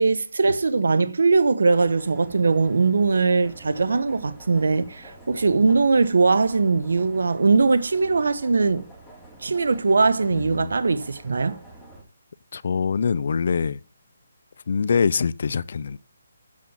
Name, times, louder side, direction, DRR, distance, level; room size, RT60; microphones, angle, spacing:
voice 1, 0.0-8.8 9.4-11.6, right 4 dB, 75° right, 1.1 m, -20 dB
sound 1, 1.7-12.0, right 1 dB, 5° right, 4.1 m, -47 dB
voice 2, 10.3-10.7 12.5-13.8 14.7-16.0, left 6 dB, 55° left, 0.5 m, -24 dB
8.4 x 7.0 x 7.4 m
hypercardioid pair, 165°, 0 cm